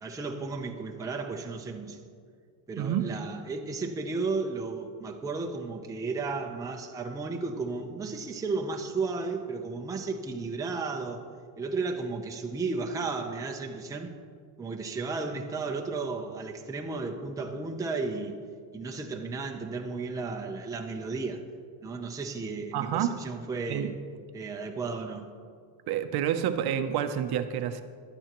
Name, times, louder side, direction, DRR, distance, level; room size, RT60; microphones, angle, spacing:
voice 1, 0.0-2.0 2.7-11.2 11.6-14.1 14.6-18.4 18.7-21.5 21.8-24.0 24.3-25.3, right 4 dB, 5° right, 2 dB, 0.6 m, -34 dB
voice 2, 2.8-3.1 22.7-23.2 23.7-23.9 25.9-27.8, right 9 dB, 50° right, 8 dB, 0.7 m, -28 dB
16.0 x 12.0 x 3.0 m, 2.1 s
cardioid pair, 150°, 48 cm